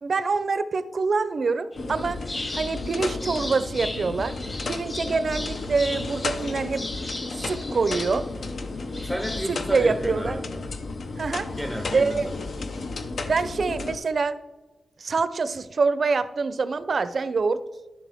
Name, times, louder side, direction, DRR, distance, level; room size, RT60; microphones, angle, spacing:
voice 1, 0.0-2.2 2.5-4.3 4.7-6.8 7.3-8.3 9.5-10.4 11.2-11.5 11.9-12.3 13.3-14.4 15.0-17.6, right 4 dB, 50° right, 0.5 m, -25 dB
sound 1, 1.7-10.6, left 2 dB, 35° left, 1.7 m, -38 dB
sound 2, 1.8-14.0, left 3 dB, 65° left, 0.8 m, -33 dB
voice 2, 9.0-10.7 11.6-12.3, equal, 10° left, 0.7 m, -32 dB
11.5 x 7.4 x 3.5 m
wide cardioid pair, 115°, 0 cm